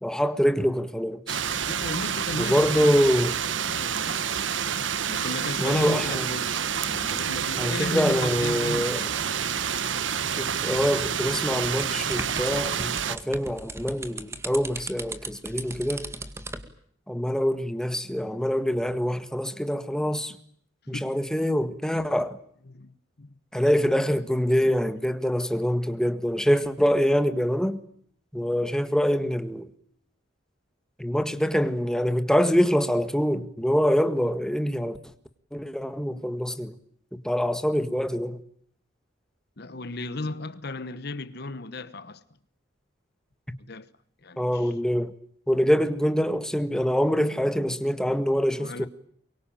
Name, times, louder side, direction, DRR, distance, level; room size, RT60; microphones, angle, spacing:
voice 1, 0.0-1.4 2.4-3.3 5.6-6.3 7.6-9.1 10.4-16.1 17.1-20.4 20.9-22.4 23.5-27.8 28.3-29.7 31.0-35.0 35.5-36.7 37.2-38.4 44.4-45.1 45.5-48.9, equal, 5° left, 1.7 m, -25 dB
sound 1, 1.3-13.2, right 7 dB, 75° right, 1.2 m, -28 dB
voice 2, 1.7-3.1 3.6-4.2 5.1-9.1 9.5-9.7 20.9-21.2 22.7-23.3 24.6-24.8 39.6-42.2 43.7-43.9 44.2-44.7 48.5-48.9, left 2 dB, 55° left, 1.1 m, -35 dB
sound 2, 11.6-16.7, right 2 dB, 15° right, 2.0 m, -37 dB
23.5 x 23.5 x 9.0 m
head